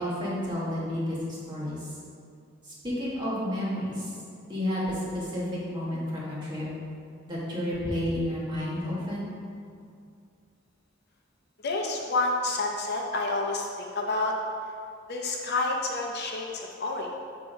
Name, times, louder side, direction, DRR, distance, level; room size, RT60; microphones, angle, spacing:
voice 1, 0.0-2.0 2.6-4.2 4.5-6.7 7.3-9.3, left 1 dB, 20° right, -7 dB, 1.6 m, -31 dB
voice 2, 11.6-14.3 15.1-17.2, left 2 dB, 55° left, 0 dB, 0.6 m, -29 dB
6.8 x 3.6 x 5.0 m, 2.4 s
head